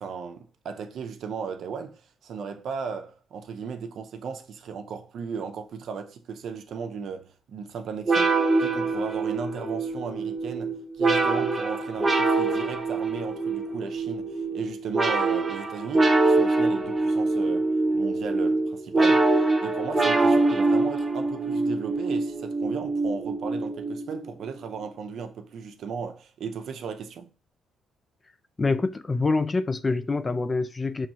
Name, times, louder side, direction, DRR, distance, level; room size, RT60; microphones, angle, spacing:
voice 1, 0.0-19.4 19.6-27.3, right 6 dB, 70° right, 0.7 m, -36 dB
sound 1, 8.1-24.3, right 3 dB, 25° right, 1.0 m, -24 dB
voice 2, 28.6-31.1, left 3 dB, 25° left, 0.4 m, -26 dB
5.9 x 3.1 x 2.9 m
cardioid pair, 90°, 0 cm